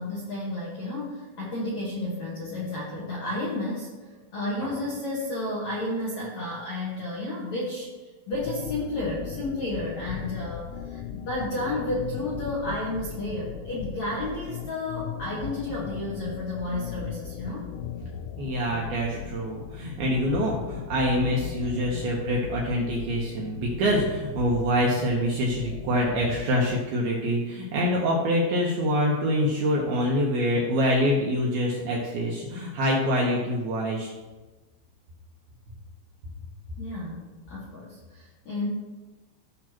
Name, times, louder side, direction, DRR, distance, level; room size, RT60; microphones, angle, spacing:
voice 1, 0.0-17.7 36.8-37.2 37.5-38.7, left 1 dB, 65° left, -6 dB, 1.7 m, -32 dB
sound 1, 8.3-26.8, left 9 dB, 85° left, 3.1 m, -38 dB
voice 2, 18.4-34.1, equal, 75° right, -3 dB, 2.3 m, -25 dB
15.5 x 5.9 x 3.0 m, 1.2 s
omnidirectional pair, 5.7 m